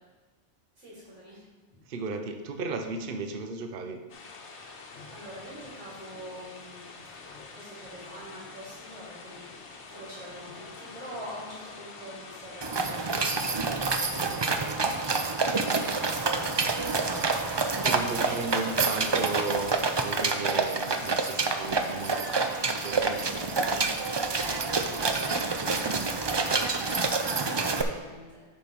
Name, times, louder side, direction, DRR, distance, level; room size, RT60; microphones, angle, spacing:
voice 1, 0.8-1.4 4.4-6.9 7.5-9.5 9.9-18.5 23.4-28.4, equal, 80° right, -7 dB, 3.3 m, -46 dB
voice 2, 1.9-4.0 17.8-19.7 20.0-22.5 22.8-23.2, right 3 dB, 55° right, 5 dB, 0.9 m, -35 dB
sound 1, 4.1-23.5, left 4 dB, 75° left, 1.2 m, -46 dB
sound 2, 12.6-27.8, right 4 dB, 35° right, 0.4 m, -27 dB
10.0 x 4.4 x 5.2 m, 1.3 s
omnidirectional pair, 1.2 m